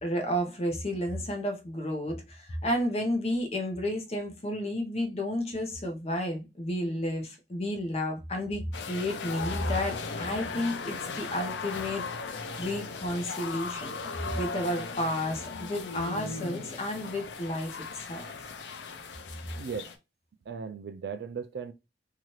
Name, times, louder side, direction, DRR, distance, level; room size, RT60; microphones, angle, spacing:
voice 1, 0.0-14.0 14.4-18.3, left 1 dB, 35° left, 0.7 m, -32 dB
sound 1, 8.7-20.0, left 4 dB, 90° left, 0.5 m, -37 dB
voice 2, 19.6-19.9 20.5-21.7, right 6 dB, 65° right, 0.3 m, -37 dB
2.7 x 2.3 x 3.0 m
head